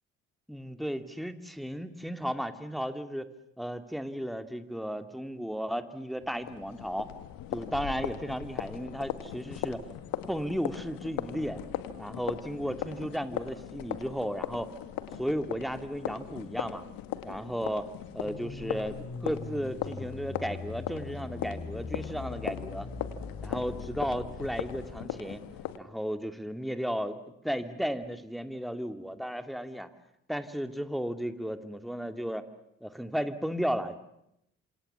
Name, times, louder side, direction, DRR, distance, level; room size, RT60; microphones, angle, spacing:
voice 1, 0.5-3.3 3.6-7.1 7.5-9.9 10.3-11.6 12.0-14.7 15.2-16.8 17.2-22.9 23.4-25.4 25.8-27.2 27.4-29.9 30.3-32.5 32.8-34.0, equal, ahead, 9 dB, 2.7 m, -34 dB
sound 1, 6.2-25.8, left 11 dB, 70° left, 1.9 m, -39 dB
sound 2, 18.2-25.0, left 4 dB, 35° left, 3.5 m, -42 dB
29.5 x 27.0 x 7.1 m, 0.80 s
hypercardioid pair, 45°, 35 cm